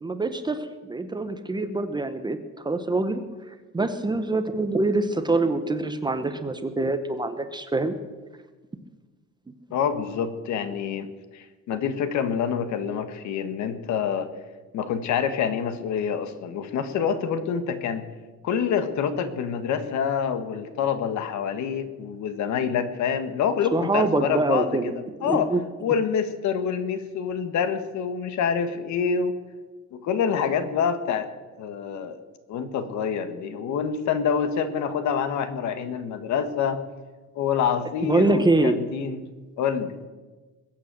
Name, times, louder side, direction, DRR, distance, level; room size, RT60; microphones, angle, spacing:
voice 1, 0.0-3.2 3.7-7.9 23.7-24.9 25.2-25.6 38.0-38.8, right 2 dB, 15° right, 9 dB, 0.9 m, -25 dB
voice 2, 9.7-11.1 11.3-14.3 14.7-18.0 18.4-24.8 25.2-25.5 25.8-29.3 29.9-31.3 31.6-32.2 32.5-36.8 37.3-39.2 39.6-40.0, left 7 dB, 60° left, 10 dB, 1.6 m, -26 dB
21.5 x 8.4 x 7.7 m, 1.3 s
cardioid pair, 150°, 32 cm